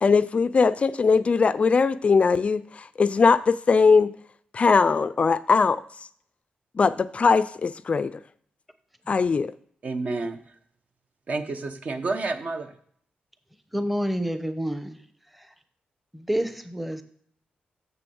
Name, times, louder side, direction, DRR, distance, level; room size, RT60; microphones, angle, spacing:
voice 1, 0.0-4.1 4.5-5.8 6.8-8.1 9.1-9.5, left 5 dB, 40° left, 15 dB, 0.3 m, -20 dB
voice 2, 9.8-10.5 11.3-12.7, right 3 dB, 50° right, 8 dB, 1.0 m, -30 dB
voice 3, 13.7-15.0 15.3-15.5 16.1-17.0, equal, 5° right, 9 dB, 0.8 m, -28 dB
6.9 x 6.7 x 6.9 m, 0.62 s
wide cardioid pair, 110°, 3 cm